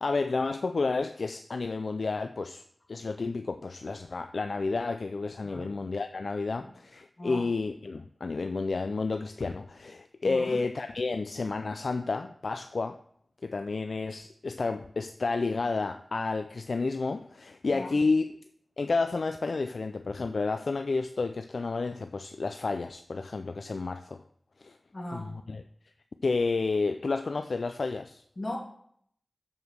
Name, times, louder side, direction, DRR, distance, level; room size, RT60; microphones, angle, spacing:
voice 1, 0.0-2.6 2.9-13.0 13.4-18.3 18.8-24.2 24.6-24.8 25.1-25.6 26.2-28.2, left 3 dB, 75° left, 8 dB, 0.4 m, -31 dB
voice 2, 10.2-10.6 17.7-18.0 24.9-25.3 28.4-28.6, left 1 dB, 45° left, -1 dB, 2.6 m, -38 dB
7.3 x 5.0 x 6.1 m, 0.65 s
cardioid pair, 45°, 0 cm